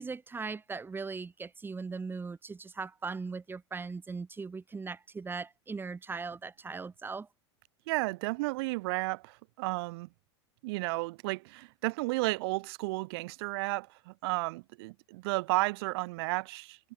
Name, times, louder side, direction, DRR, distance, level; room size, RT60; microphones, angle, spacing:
voice 1, 0.0-7.3, right 4 dB, 15° right, 1.2 m, -39 dB
voice 2, 7.9-10.1 10.6-16.8, right 23 dB, 60° right, 1.0 m, -33 dB
hypercardioid pair, 95°, 15 cm